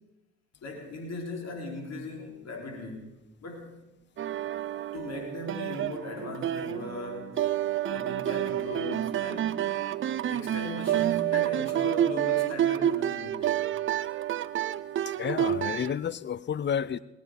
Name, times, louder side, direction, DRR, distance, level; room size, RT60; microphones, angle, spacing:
voice 1, 0.6-3.8 4.9-7.4 7.9-9.7 10.3-13.6, left 2 dB, 50° left, 1 dB, 3.9 m, -38 dB
sound 1, 4.2-15.9, right 11 dB, 40° right, 0.5 m, -29 dB
voice 2, 15.2-17.0, left 8 dB, 35° left, 18 dB, 0.6 m, -30 dB
18.5 x 9.8 x 4.8 m, 0.98 s
hypercardioid pair, 50°, 33 cm